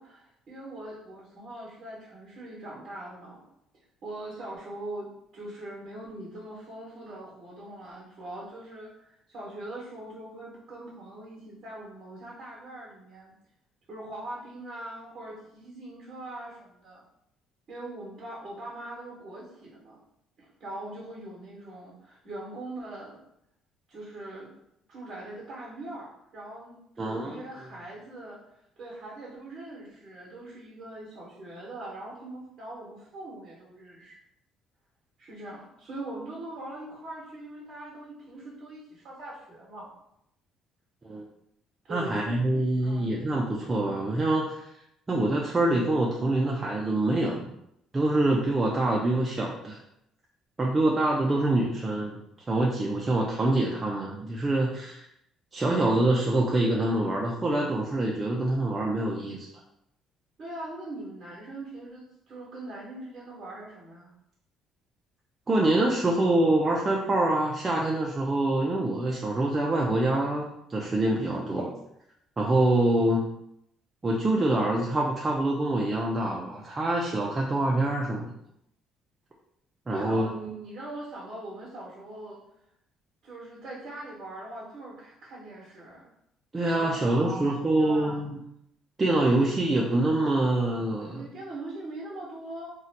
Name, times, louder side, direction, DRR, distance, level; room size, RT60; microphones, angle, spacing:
voice 1, 0.0-3.4 4.0-5.1 5.3-13.3 13.9-17.0 17.7-20.0 20.4-23.2 23.9-24.5 24.9-34.1 35.2-39.9 41.9-42.4 42.8-43.1 60.4-64.1 79.9-82.4 83.2-86.1 86.7-88.2 91.0-92.7, right 1 dB, 35° right, -5 dB, 0.9 m, -41 dB
voice 2, 27.0-27.4 41.0-41.2 41.9-44.7 45.1-47.5 47.9-49.8 50.6-52.2 52.5-55.0 55.5-59.5 65.5-71.7 72.4-73.2 74.0-78.3 79.9-80.3 86.5-88.4 89.0-91.2, right 2 dB, 15° right, -2 dB, 0.3 m, -25 dB
2.6 x 2.1 x 4.0 m, 0.80 s
cardioid pair, 165°, 0 cm